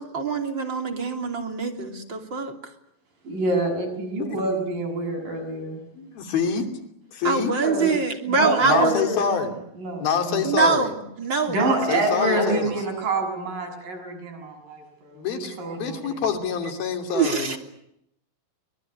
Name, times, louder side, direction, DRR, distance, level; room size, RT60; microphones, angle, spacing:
voice 1, 0.0-2.5 7.2-8.9 10.4-11.6 11.9-12.0 17.1-17.6, right 5 dB, 35° right, 4 dB, 3.5 m, -24 dB
voice 2, 3.3-5.8 7.6-7.9 8.3-9.5 9.8-10.4 11.5-16.2, right 2 dB, 65° right, 4 dB, 8.6 m, -27 dB
voice 3, 5.9-6.7 7.1-7.5 8.6-9.6 10.0-10.9 11.9-12.7 15.2-17.6, left 6 dB, 90° left, 5 dB, 4.9 m, -26 dB
24.0 x 22.5 x 10.0 m, 0.78 s
omnidirectional pair, 4.1 m